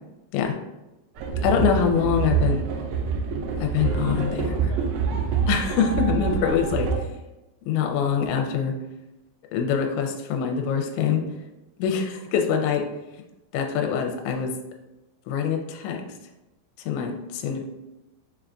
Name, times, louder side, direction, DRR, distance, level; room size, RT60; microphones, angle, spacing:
sound 1, 1.2-7.0, right 6 dB, 85° right, 2.3 m, -26 dB
voice 1, 1.4-2.6 3.6-4.8 5.5-6.9 7.7-8.7 9.5-11.2 11.8-12.8 13.5-14.5 15.3-16.0 16.9-17.6, left 7 dB, 85° left, 3 dB, 2.8 m, -24 dB
6.7 x 2.4 x 2.3 m, 0.99 s
omnidirectional pair, 5.2 m